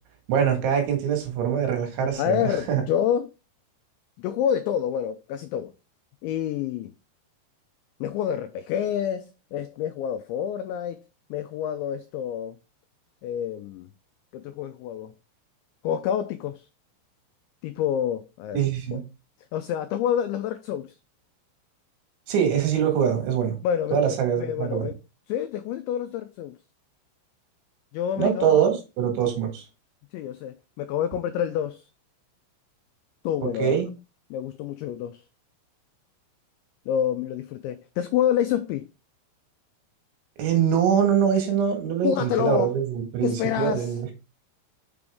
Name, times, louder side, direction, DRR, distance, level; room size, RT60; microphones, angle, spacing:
voice 1, 0.3-2.8 18.5-19.0 22.3-23.6 23.9-24.9 28.2-29.7 33.4-33.9 40.4-44.1, right 8 dB, 70° right, 3.8 m, -23 dB
voice 2, 2.0-3.3 4.2-5.7 6.2-6.9 8.0-11.0 11.3-12.6 13.2-13.9 14.3-15.1 15.8-16.7 17.6-18.6 18.9-19.0 19.5-21.0 23.6-25.0 25.3-26.5 27.9-28.6 30.1-31.8 33.2-33.8 34.3-35.2 36.9-38.9 42.0-42.7 43.2-43.9, left 9 dB, 90° left, 2.6 m, -28 dB
6.9 x 6.0 x 3.5 m
omnidirectional pair, 6.0 m